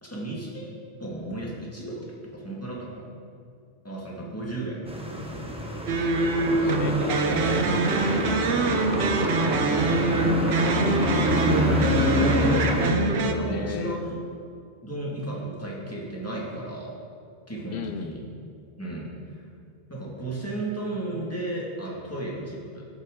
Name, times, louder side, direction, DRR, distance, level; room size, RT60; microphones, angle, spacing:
voice 1, 0.0-0.7 1.0-3.1 3.8-4.8 10.2-11.5 13.2-14.2 14.8-17.0 17.5-18.2 18.8-19.5 19.9-22.9, right 2 dB, 15° left, -4 dB, 2.0 m, -34 dB
sound 1, 4.9-12.9, left 1 dB, 5° right, 1.0 m, -27 dB
sound 2, 5.9-13.3, right 3 dB, 90° right, 1.0 m, -24 dB
voice 2, 6.3-7.5 13.4-14.0 17.7-18.1, left 6 dB, 70° left, 9 dB, 0.8 m, -36 dB
13.5 x 8.3 x 3.8 m, 2.4 s
omnidirectional pair, 1.0 m